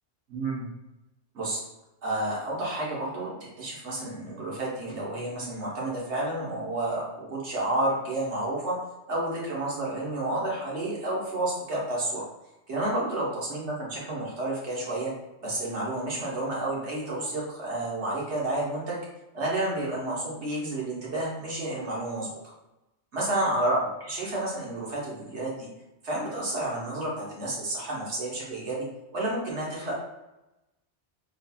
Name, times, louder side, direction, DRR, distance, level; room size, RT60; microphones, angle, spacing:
voice 1, 0.3-0.7 1.3-1.6 2.0-8.8 9.1-12.3 12.7-15.1 15.4-19.0 19.3-22.3 23.1-25.7 26.0-28.8 29.1-29.9, right 1 dB, 75° right, -5 dB, 1.5 m, -30 dB
4.3 x 3.2 x 2.3 m, 0.98 s
omnidirectional pair, 1.2 m